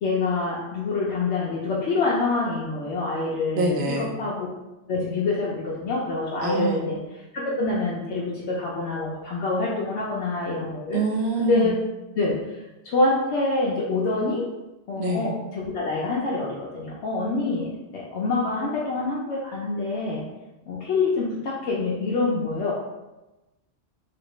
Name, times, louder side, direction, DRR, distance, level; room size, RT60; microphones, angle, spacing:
voice 1, 0.0-4.5 4.9-7.0 7.3-11.0 11.4-11.7 12.1-14.5 14.9-20.2 20.7-22.7, left 3 dB, 85° left, -5 dB, 0.9 m, -26 dB
voice 2, 3.6-4.1 6.4-6.8 10.9-11.7 14.9-15.3, right 2 dB, 55° right, 0 dB, 0.7 m, -25 dB
3.3 x 2.7 x 3.0 m, 1.0 s
omnidirectional pair, 1.1 m